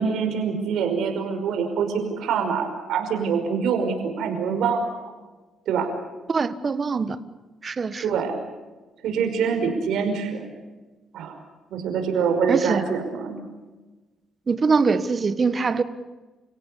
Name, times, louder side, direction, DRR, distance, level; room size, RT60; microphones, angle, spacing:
voice 1, 0.0-4.9 5.7-5.9 8.0-8.3 9.0-10.4 11.1-11.4 11.7-13.4, right 6 dB, 80° right, 4 dB, 5.4 m, -25 dB
voice 2, 6.3-7.2 7.6-8.1 12.5-12.8 14.5-15.8, right 4 dB, 35° right, 13 dB, 1.4 m, -23 dB
29.5 x 17.0 x 8.4 m, 1.2 s
cardioid pair, 90°, 0 cm